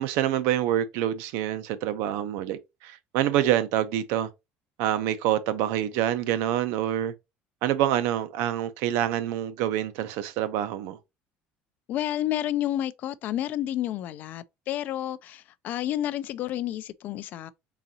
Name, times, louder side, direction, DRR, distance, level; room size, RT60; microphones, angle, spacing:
voice 1, 0.0-4.3 4.8-7.1 7.6-11.0, right 12 dB, 75° right, 0.6 m, -26 dB
voice 2, 11.9-17.5, left 12 dB, 40° left, 0.3 m, -30 dB
3.9 x 3.7 x 2.8 m
cardioid pair, 170°, 4 cm